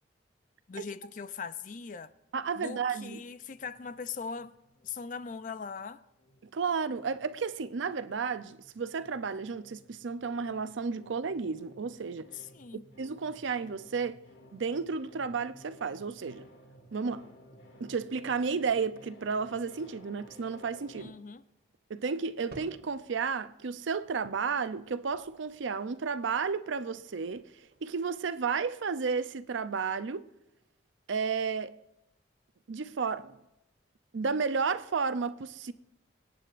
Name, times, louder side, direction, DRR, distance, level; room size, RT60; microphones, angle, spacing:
voice 1, 0.7-2.1 2.6-4.6 4.8-6.0 12.3-12.8 21.0-21.4, left 5 dB, 40° left, 0.4 m, -40 dB
voice 2, 2.3-3.2 6.4-12.3 13.0-14.2 14.5-16.5 16.9-17.3 17.8-21.1 21.9-27.5 27.8-30.3 31.1-31.7 32.7-33.4 34.1-35.7, right 5 dB, 75° right, 0.5 m, -32 dB
sound 1, 3.4-5.9 6.2-21.1, equal, 75° left, 2.3 m, -57 dB
sound 2, 22.3-28.7, right 1 dB, 55° right, 1.9 m, -57 dB
24.5 x 9.1 x 2.5 m
head